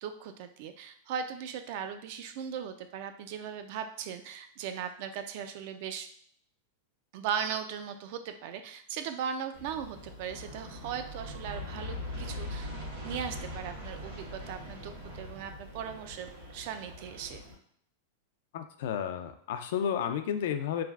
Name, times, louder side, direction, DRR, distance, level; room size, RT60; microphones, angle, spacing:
voice 1, 0.0-6.1 7.1-17.4, right 8 dB, 55° right, 8 dB, 0.3 m, -38 dB
Aircraft, 9.5-17.5, left 1 dB, 90° right, 1.2 m, -42 dB
voice 2, 18.5-20.8, left 8 dB, 65° left, 8 dB, 0.3 m, -32 dB
3.2 x 2.4 x 2.3 m, 0.65 s
supercardioid pair, 145°, 0 cm